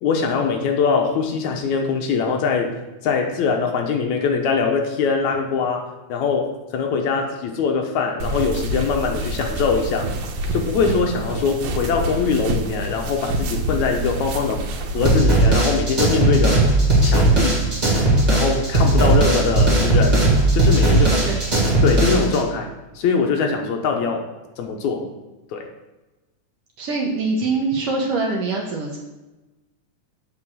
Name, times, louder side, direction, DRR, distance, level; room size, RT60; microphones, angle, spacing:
voice 1, 0.0-2.8 3.0-10.1 10.5-14.6 14.9-16.7 17.0-17.6 18.3-20.3 20.5-21.3 21.8-22.7 23.0-24.3 24.6-25.1 25.5-25.7, left 5 dB, 75° left, 3 dB, 2.2 m, -22 dB
sound 1, 8.2-15.2, right 1 dB, 90° right, 2.3 m, -27 dB
sound 2, 15.0-22.4, right 2 dB, 20° right, 1.2 m, -17 dB
voice 2, 26.8-29.0, right 3 dB, 65° right, 0 dB, 1.6 m, -23 dB
7.3 x 4.7 x 6.1 m, 1.1 s
omnidirectional pair, 3.5 m